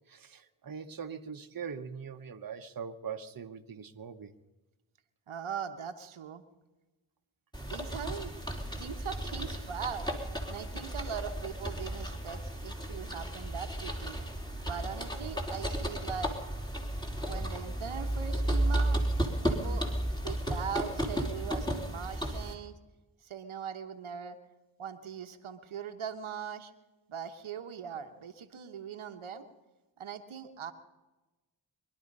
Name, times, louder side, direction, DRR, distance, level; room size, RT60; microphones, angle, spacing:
voice 1, 0.1-4.3, right 6 dB, 45° right, 6 dB, 1.1 m, -42 dB
voice 2, 5.3-6.4 7.7-8.3 8.8-10.1 10.5-14.2 14.6-16.4 17.2-19.0 19.5-19.9 20.2-22.7 23.2-24.4 24.8-26.7 27.1-29.5 30.0-30.7, right 7 dB, 90° right, 6 dB, 1.2 m, -40 dB
sound 1, 7.5-22.5, right 1 dB, 10° left, 3.3 m, -33 dB
23.5 x 11.5 x 5.4 m, 1.1 s
cardioid pair, 45°, 48 cm